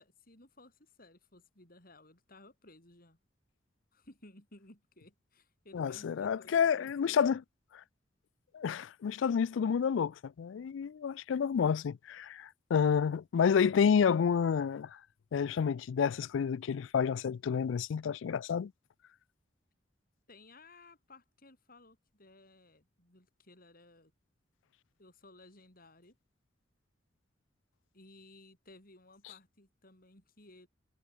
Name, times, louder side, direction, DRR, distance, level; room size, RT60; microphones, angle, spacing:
voice 1, 0.0-3.2 3.9-7.4 20.3-24.1 25.0-26.2 27.9-30.7, left 2 dB, 50° left, 7.0 m, -58 dB
voice 2, 5.7-7.4 8.5-14.9 15.3-18.7, left 7 dB, 75° left, 0.4 m, -29 dB
head